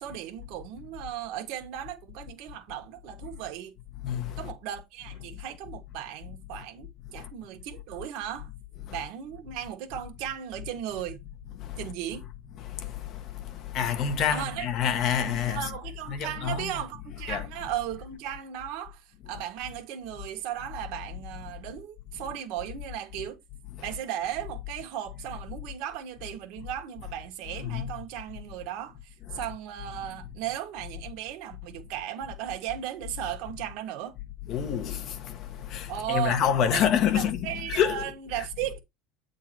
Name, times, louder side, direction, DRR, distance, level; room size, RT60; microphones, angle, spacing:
voice 1, 0.0-3.7 4.4-8.5 8.9-11.2 11.8-12.2 14.3-14.7 15.4-23.4 23.8-34.1 35.9-36.4 36.7-36.8 37.1-38.8, right 11 dB, 55° right, 1.6 m, -36 dB
voice 2, 4.0-4.5 7.1-7.3 8.8-9.0 11.6-11.9 12.6-15.7 16.1-16.8 17.3-17.5 23.7-23.8 27.6-27.9 29.3-29.4 34.5-38.4, left 8 dB, 40° left, 0.9 m, -28 dB
8.6 x 3.8 x 4.5 m
cardioid pair, 160°, 0 cm